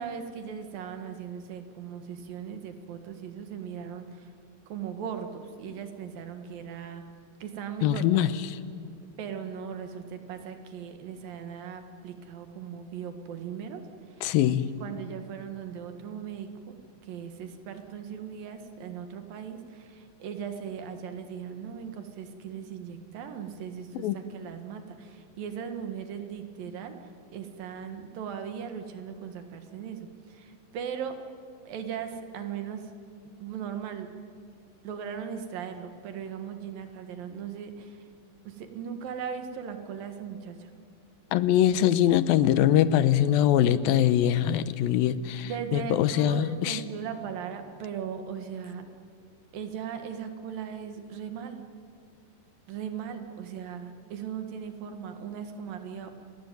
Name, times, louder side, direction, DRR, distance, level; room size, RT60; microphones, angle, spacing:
voice 1, 0.0-4.3 4.7-7.0 7.4-8.0 9.2-13.8 14.1-14.3 14.8-16.8 17.0-27.0 27.3-31.2 31.7-32.9 33.4-34.1 34.8-38.1 38.5-40.7 45.4-48.8 49.5-51.6 52.7-56.1, right 7 dB, 75° right, 7 dB, 3.4 m, -38 dB
voice 2, 7.8-8.6 14.2-14.7 24.0-24.2 41.3-46.8, left 11 dB, 90° left, 14 dB, 2.6 m, -23 dB
29.5 x 19.5 x 9.4 m, 2.4 s
omnidirectional pair, 4.1 m